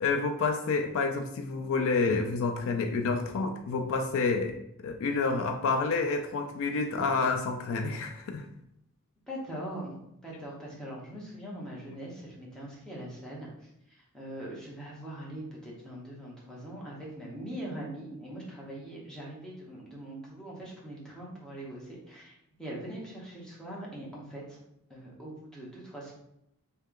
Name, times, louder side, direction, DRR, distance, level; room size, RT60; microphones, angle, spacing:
voice 1, 0.0-4.6 4.8-8.4, left 4 dB, 65° left, 5 dB, 0.4 m, -29 dB
voice 2, 9.3-10.0 10.2-13.5 13.9-24.6 24.9-26.1, right 1 dB, 5° left, -5 dB, 1.0 m, -42 dB
3.2 x 2.8 x 3.7 m, 0.80 s
head